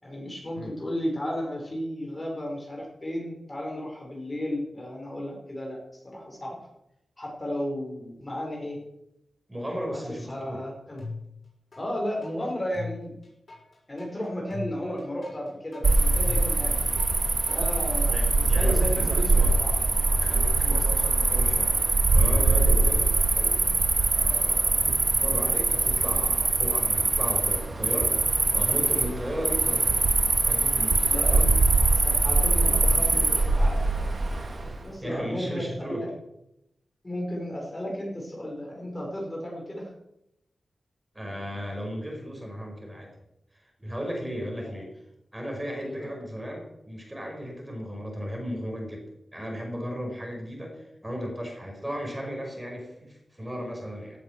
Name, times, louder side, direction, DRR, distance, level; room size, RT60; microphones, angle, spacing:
voice 1, 0.0-6.6 7.2-8.8 10.3-11.1 11.8-13.1 13.9-16.8 17.4-19.8 20.6-20.8 22.8-22.9 31.1-31.4 31.9-33.8 34.8-36.1 37.0-39.9 44.6-44.7 45.8-46.2, equal, 20° left, -1 dB, 4.8 m, -34 dB
voice 2, 9.5-10.6 18.1-19.6 20.2-23.6 24.1-24.7 25.1-28.1 28.5-30.0 30.4-31.6 35.0-36.1 41.1-43.1 43.5-45.0 45.3-49.1 49.3-54.2, equal, 15° right, 1 dB, 5.1 m, -35 dB
sound 1, 11.0-11.8 12.2-17.8, left 3 dB, 55° left, 6.5 m, -40 dB
Cricket, 15.8-34.8, right 3 dB, 50° right, 2.6 m, -23 dB
17.5 x 8.5 x 7.3 m, 0.85 s
wide cardioid pair, 110°, 0 cm